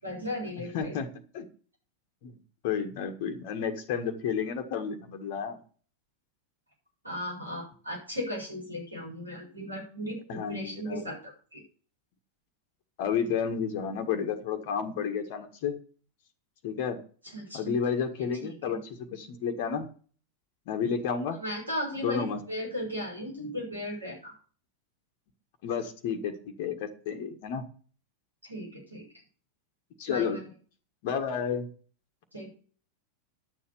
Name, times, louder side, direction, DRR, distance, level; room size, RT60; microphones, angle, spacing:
voice 1, 0.0-0.9 7.0-11.6 17.2-17.7 18.4-18.8 21.3-24.3 28.4-29.0 30.1-30.4 32.3-32.5, left 1 dB, 85° right, -1 dB, 7.3 m, -36 dB
voice 2, 0.7-1.1 1.3-1.5 2.2-2.3 2.6-5.6 10.3-11.0 13.0-15.7 16.6-17.0 17.5-18.8 19.1-19.9 20.7-21.4 22.0-22.4 25.6-27.6 30.0-30.4 31.0-31.7, left 7 dB, 50° left, 5 dB, 1.7 m, -31 dB
11.0 x 7.2 x 6.9 m, 0.42 s
figure-of-eight pair, 90°, 0 cm